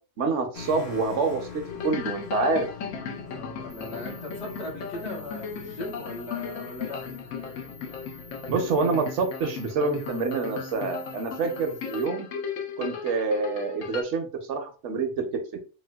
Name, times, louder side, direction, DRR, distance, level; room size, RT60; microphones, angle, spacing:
voice 1, 0.2-2.7 8.5-12.3 12.8-15.3 15.5-15.6, right 4 dB, 70° right, 5 dB, 1.0 m, -27 dB
sound 1, 0.5-8.9, left 5 dB, 45° left, 0.6 m, -44 dB
sound 2, 1.7-14.0, left 6 dB, 85° left, 1.0 m, -37 dB
voice 2, 3.2-7.0 11.4-11.7, left 1 dB, 65° left, 0 dB, 1.3 m, -39 dB
sound 3, 3.7-12.0, left 2 dB, 50° right, 0.5 m, -48 dB
4.1 x 2.2 x 2.2 m, 0.34 s
omnidirectional pair, 1.3 m